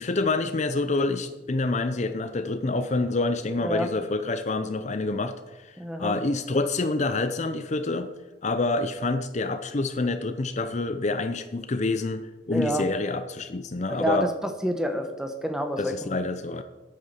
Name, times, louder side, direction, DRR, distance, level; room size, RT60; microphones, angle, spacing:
voice 1, 0.0-8.1 8.4-14.3 15.8-16.6, left 3 dB, 35° left, 10 dB, 0.5 m, -27 dB
voice 2, 5.8-6.2 12.5-12.8 13.9-14.3 14.6-16.1, equal, 5° right, 6 dB, 1.0 m, -28 dB
9.5 x 8.6 x 6.8 m, 1.1 s
head